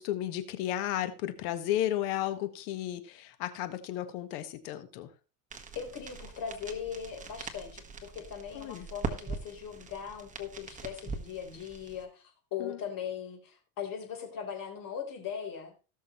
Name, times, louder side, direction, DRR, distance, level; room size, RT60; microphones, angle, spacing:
voice 1, 0.0-5.1 8.5-8.9 12.6-12.8, left 12 dB, 75° left, 1.6 m, -33 dB
sound 1, 5.5-12.0, right 4 dB, 15° right, 1.5 m, -42 dB
voice 2, 5.8-15.7, left 8 dB, 45° left, 4.0 m, -39 dB
18.0 x 6.5 x 3.1 m
supercardioid pair, 120°, 45 cm